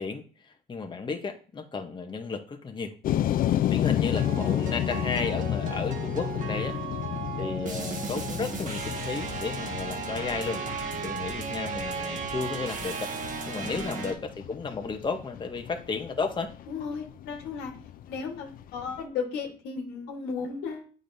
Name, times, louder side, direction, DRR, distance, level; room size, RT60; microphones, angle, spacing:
voice 1, 0.0-2.9 3.7-6.8 7.4-10.6 11.0-13.1 13.5-16.5, left 4 dB, 30° left, 5 dB, 0.8 m, -33 dB
sound 1, 3.0-19.0, left 11 dB, 60° left, 0.4 m, -32 dB
sound 2, 4.1-14.1, right 5 dB, 50° right, 1.3 m, -35 dB
voice 2, 16.7-17.7 18.1-20.9, left 5 dB, 85° left, 2 dB, 1.4 m, -35 dB
8.6 x 5.1 x 2.6 m, 0.39 s
supercardioid pair, 80°, 17 cm